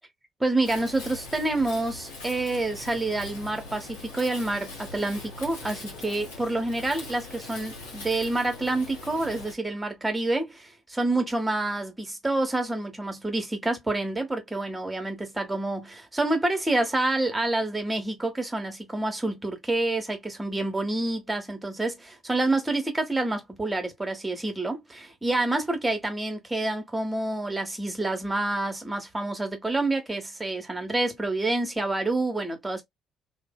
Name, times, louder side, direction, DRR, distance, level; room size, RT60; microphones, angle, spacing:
voice 1, 0.4-32.8, right 2 dB, 15° right, 0.9 m, -28 dB
Wind, 0.6-9.5, left 3 dB, 75° left, 0.9 m, -42 dB
2.6 x 2.1 x 2.2 m
figure-of-eight pair, 45°, 0 cm